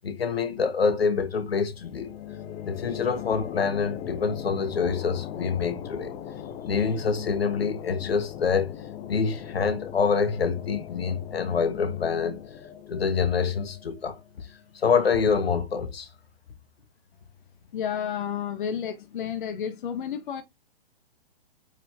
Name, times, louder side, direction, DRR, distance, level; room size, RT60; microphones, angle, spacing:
voice 1, 0.0-2.1 2.6-6.1 6.6-8.7 9.1-12.4 12.9-14.2 14.8-16.1, left 5 dB, 70° left, 1.7 m, -26 dB
sound 1, 1.7-15.1, left 9 dB, 20° left, 0.9 m, -39 dB
voice 2, 17.7-20.4, left 8 dB, 55° left, 1.3 m, -31 dB
8.3 x 5.6 x 2.8 m
figure-of-eight pair, 125°, 31 cm